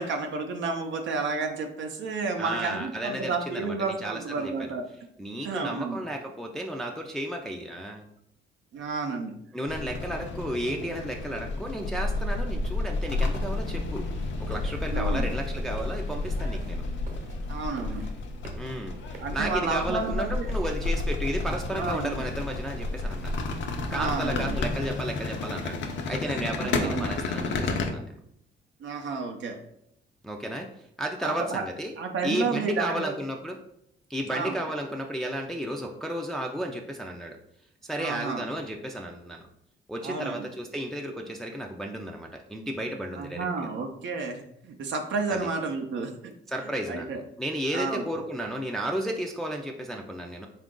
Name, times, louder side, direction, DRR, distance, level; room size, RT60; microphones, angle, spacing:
voice 1, 0.0-4.9 5.4-6.0 8.7-9.4 14.9-15.3 17.5-18.0 19.2-20.5 21.7-22.3 23.9-24.6 26.3-26.5 26.7-27.1 28.8-29.6 31.2-31.6 32.0-33.1 34.3-34.5 38.0-38.4 40.0-40.5 43.1-46.3 46.6-47.2 47.7-48.1, right 4 dB, 70° right, 4 dB, 0.6 m, -31 dB
voice 2, 2.4-4.7 5.2-8.0 9.5-14.1 14.4-16.8 18.6-19.0 19.3-23.4 23.9-25.8 26.1-28.2 30.2-30.7 31.0-31.9 32.2-33.6 34.1-37.4 37.8-39.4 39.9-43.5 45.3-45.4 46.5-47.1 47.4-50.5, right 1 dB, ahead, 1 dB, 0.4 m, -33 dB
sound 1, 9.7-27.9, left 2 dB, 70° left, 0.6 m, -31 dB
sound 2, 14.5-20.9, right 2 dB, 40° right, 0.9 m, -48 dB
3.8 x 2.5 x 3.6 m, 0.74 s
cardioid pair, 90°, 20 cm